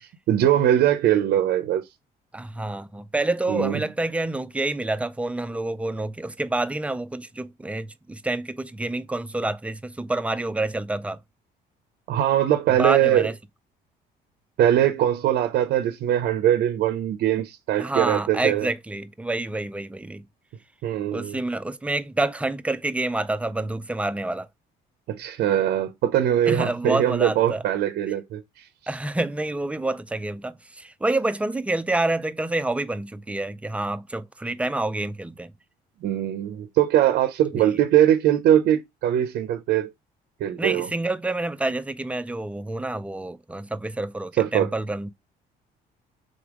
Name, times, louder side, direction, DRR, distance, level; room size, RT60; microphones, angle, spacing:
voice 1, 0.3-1.8 3.5-3.8 12.1-13.3 14.6-18.7 20.8-21.4 25.1-28.7 36.0-39.9 40.4-40.9 44.4-44.7, right 11 dB, 65° right, 0.6 m, -21 dB
voice 2, 2.3-11.2 12.8-13.4 17.8-20.2 21.1-24.5 26.5-27.6 28.9-35.5 37.5-37.7 40.6-45.1, right 2 dB, 5° right, 0.4 m, -28 dB
3.8 x 3.4 x 3.5 m
cardioid pair, 110°, 17 cm